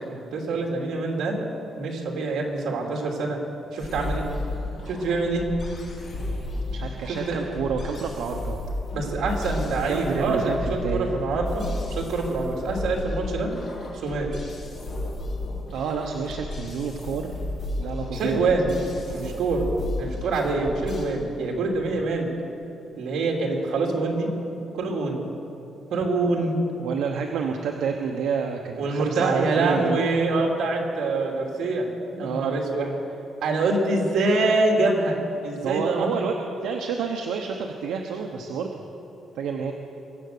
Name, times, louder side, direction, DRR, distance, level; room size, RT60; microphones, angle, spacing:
voice 1, 0.1-1.4 1.8-3.4 3.7-4.2 4.9-5.5 7.1-7.4 8.9-13.5 14.0-14.3 18.1-18.7 19.1-19.7 20.0-22.3 23.0-24.3 24.7-25.2 25.9-26.6 28.8-32.9 33.4-35.2 35.4-36.1, right 3 dB, 65° right, 0 dB, 2.7 m, -25 dB
sound 1, 3.8-21.0, left 2 dB, 45° left, 3.6 m, -33 dB
voice 2, 6.7-8.6 9.8-11.2 15.7-17.4 17.8-18.4 19.1-19.4 26.2-26.3 26.8-30.0 32.2-32.6 35.6-36.4 36.6-38.7 39.4-39.7, right 6 dB, 85° right, 2 dB, 0.9 m, -29 dB
23.5 x 7.9 x 6.7 m, 2.9 s
cardioid pair, 160°, 0 cm